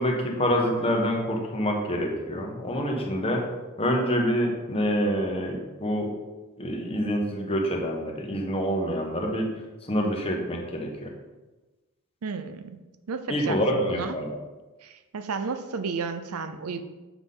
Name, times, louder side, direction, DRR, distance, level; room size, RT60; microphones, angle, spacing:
voice 1, 0.0-3.4 3.8-6.1 6.6-9.5 9.8-11.1 13.3-14.3, equal, 25° left, 0 dB, 1.1 m, -26 dB
voice 2, 12.2-12.8 13.1-14.2 14.8-16.8, right 5 dB, 75° right, 9 dB, 0.6 m, -33 dB
7.1 x 5.7 x 3.9 m, 1.2 s
head